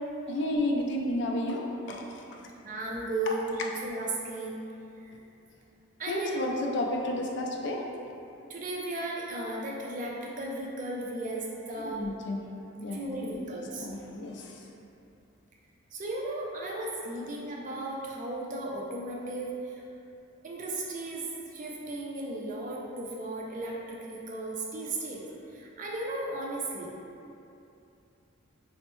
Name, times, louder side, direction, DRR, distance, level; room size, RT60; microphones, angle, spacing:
voice 1, 0.3-2.2 3.3-3.4 6.1-7.9 11.8-12.5 12.8-13.3 13.8-14.5, left 1 dB, 55° left, 0 dB, 0.4 m, -32 dB
voice 2, 2.6-4.6 6.0-6.6 8.5-12.0 12.9-13.9 15.9-19.8 20.4-21.3 21.5-26.9, right 2 dB, 40° right, -2 dB, 0.4 m, -35 dB
4.2 x 2.0 x 3.0 m, 2.7 s
head